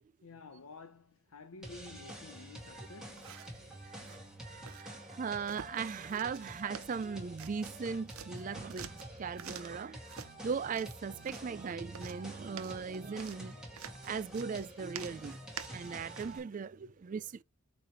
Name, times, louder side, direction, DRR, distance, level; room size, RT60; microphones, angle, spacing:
voice 1, 0.2-3.4, left 3 dB, 80° left, 0.7 m, -51 dB
sound 1, 1.6-16.4, equal, 5° right, 2.1 m, -48 dB
sound 2, 3.1-3.6 4.0-4.2 4.7-4.8 5.5-5.8 6.1-6.5 6.7-7.8 8.1-9.8 10.1-10.3 10.7-11.5 11.9-16.4, right 8 dB, 75° right, 0.6 m, -48 dB
voice 2, 3.5-13.6 14.0-17.4, right 5 dB, 35° right, 0.3 m, -39 dB
8.6 x 3.2 x 4.4 m
head